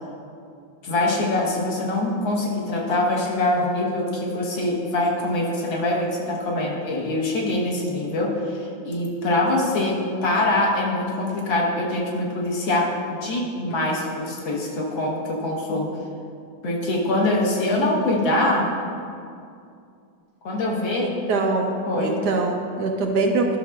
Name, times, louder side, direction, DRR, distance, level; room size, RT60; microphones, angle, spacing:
voice 1, 0.8-15.9 16.6-18.7 20.4-21.2 21.9-22.2, left 2 dB, 85° left, -3 dB, 1.8 m, -24 dB
voice 2, 21.0-21.7 22.0-23.6, right 3 dB, 70° right, 2 dB, 1.1 m, -23 dB
12.0 x 5.9 x 2.3 m, 2.4 s
omnidirectional pair, 2.0 m